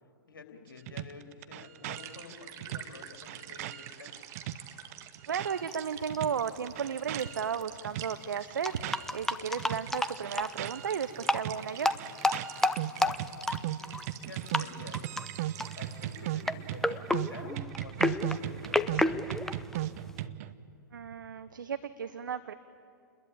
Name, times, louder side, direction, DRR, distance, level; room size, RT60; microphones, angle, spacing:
voice 1, 0.3-4.2 12.9-13.2 13.8-13.9 14.2-15.0 15.8-19.2, left 5 dB, 70° left, 4 dB, 3.6 m, -49 dB
sound 1, 0.9-5.8 6.1-9.3 9.6-20.5, right 14 dB, 45° right, 1.0 m, -37 dB
sound 2, 1.9-16.2, right 10 dB, 25° right, 1.7 m, -48 dB
voice 2, 5.3-11.9 20.9-22.5, right 7 dB, 65° right, 12 dB, 1.0 m, -34 dB
sound 3, 5.7-5.8 6.1-6.2 7.2-7.3 7.6-7.7 8.6-10.5 11.2-11.4 11.8-14.2 14.5-14.6 14.9-15.3 15.6-15.9 16.4-20.2, left 2 dB, 5° left, 0.7 m, -30 dB
29.5 x 21.5 x 8.8 m, 2.4 s
figure-of-eight pair, 110°, 11 cm